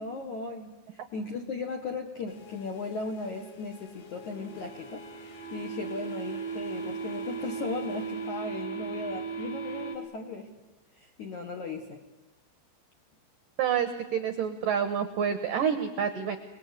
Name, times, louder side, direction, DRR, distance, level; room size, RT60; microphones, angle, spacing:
voice 1, 0.0-10.5 11.0-12.0, left 3 dB, 65° left, 3 dB, 1.9 m, -37 dB
sound 1, 2.3-8.4, left 6 dB, 85° left, 4.8 m, -52 dB
sound 2, 4.0-10.0, right 6 dB, 40° left, 2.5 m, -37 dB
voice 2, 13.6-16.4, right 8 dB, 80° right, 9 dB, 1.9 m, -28 dB
29.0 x 20.5 x 8.2 m, 1.0 s
omnidirectional pair, 5.8 m